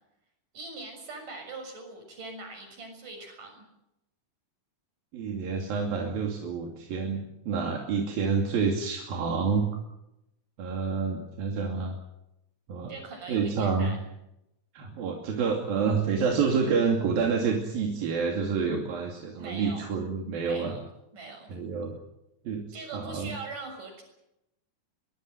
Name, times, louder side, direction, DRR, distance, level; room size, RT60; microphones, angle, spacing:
voice 1, 0.5-3.6 12.9-14.1 19.4-19.9 20.4-20.8 21.1-21.5 22.7-24.0, right 3 dB, 60° right, 5 dB, 8.3 m, -42 dB
voice 2, 5.1-9.7 10.6-12.0 12.7-12.9 13.3-13.9 14.7-20.7 21.5-21.9 22.5-23.3, right 5 dB, 85° right, 1 dB, 4.4 m, -28 dB
22.5 x 22.5 x 7.9 m, 0.87 s
omnidirectional pair, 4.1 m